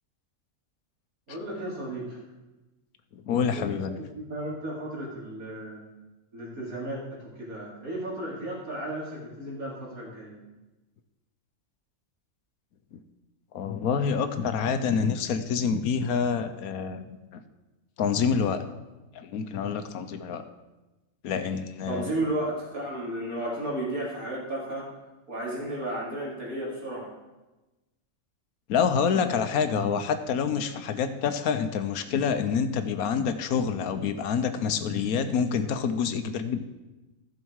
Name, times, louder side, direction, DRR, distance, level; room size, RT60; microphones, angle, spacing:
voice 1, 1.3-2.2 3.5-5.8 6.3-10.3 21.9-24.9 25.3-27.1 29.3-29.5, right 1 dB, 75° right, -5 dB, 3.6 m, -34 dB
voice 2, 3.3-4.0 12.9-13.0 13.5-17.0 18.0-18.7 19.1-20.4 21.2-22.1 28.7-36.6, left 6 dB, 85° left, 10 dB, 1.2 m, -27 dB
14.5 x 6.4 x 4.7 m, 1.1 s
omnidirectional pair, 1.5 m